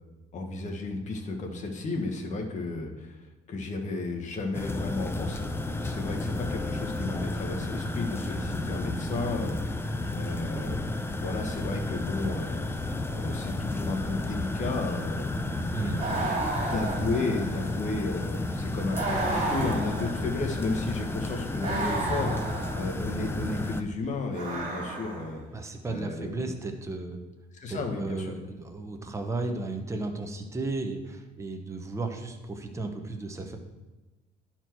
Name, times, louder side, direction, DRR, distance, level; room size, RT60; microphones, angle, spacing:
voice 1, 0.3-5.5 5.8-12.7 13.1-15.3 15.8-16.3 16.6-25.4 25.8-26.5 27.5-28.3, left 3 dB, 45° left, 2 dB, 1.4 m, -33 dB
sound 1, 4.5-23.8, left 2 dB, 15° left, 0.6 m, -32 dB
sound 2, 16.0-17.7 18.9-20.5 21.6-22.9 24.3-25.4, right 3 dB, 45° right, 2.3 m, -32 dB
voice 2, 25.5-27.2 27.7-33.6, right 3 dB, 15° right, 4 dB, 0.9 m, -34 dB
11.0 x 4.5 x 4.6 m, 1.1 s
cardioid pair, 110°, 17 cm